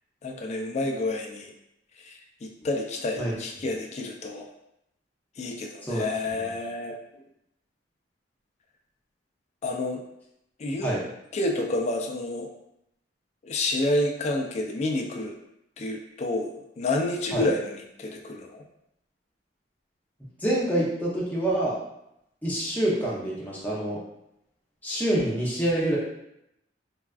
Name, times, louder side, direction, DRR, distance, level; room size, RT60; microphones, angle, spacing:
voice 1, 0.2-1.5 2.0-4.5 5.4-7.0 9.6-10.0 10.6-10.9 11.3-12.5 13.4-15.3 15.8-18.6, left 2 dB, 35° left, 2 dB, 0.3 m, -29 dB
voice 2, 20.4-21.7 22.4-24.0 24.8-26.0, right 1 dB, 10° left, -5 dB, 0.7 m, -26 dB
3.3 x 2.3 x 2.3 m, 0.81 s
head